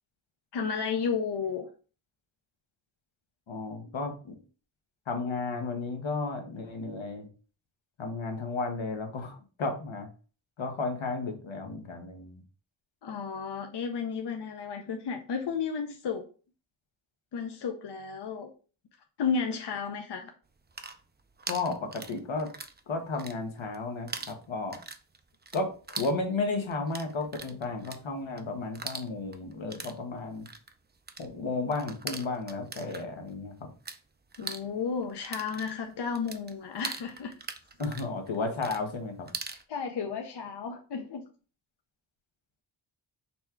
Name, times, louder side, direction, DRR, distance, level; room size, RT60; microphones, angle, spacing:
voice 1, 0.5-1.7 13.0-16.2 17.3-18.5 19.2-20.3 34.4-37.3 39.7-41.2, left 6 dB, 60° left, 4 dB, 0.6 m, -33 dB
voice 2, 3.5-4.4 5.1-7.3 8.0-10.1 10.6-12.4 21.5-22.5 22.9-24.8 25.5-25.7 26.0-30.5 31.2-33.7 37.8-39.3, left 3 dB, 80° left, 4 dB, 1.0 m, -33 dB
sound 1, 20.5-22.8 23.1-23.8 24.1-34.0 34.3-39.6, right 4 dB, 25° right, 0.4 m, -41 dB
4.2 x 2.3 x 4.3 m, 0.37 s
wide cardioid pair, 60°, 46 cm